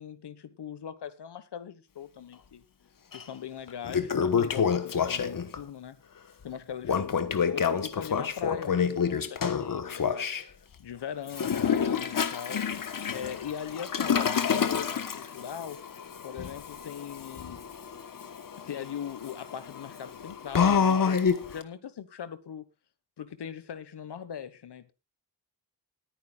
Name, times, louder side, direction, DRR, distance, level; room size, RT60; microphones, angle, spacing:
voice 1, 0.0-2.6 3.1-6.0 6.4-10.4 10.8-12.6 13.1-15.8 16.2-17.7 18.7-22.6 23.2-24.9, left 8 dB, 80° left, 1.4 m, -40 dB
Toilet flush, 3.1-3.2 3.7-5.6 6.8-10.4 11.3-21.6, left 7 dB, 55° left, 1.3 m, -28 dB
21.0 x 9.5 x 2.4 m
wide cardioid pair, 155°, 40 cm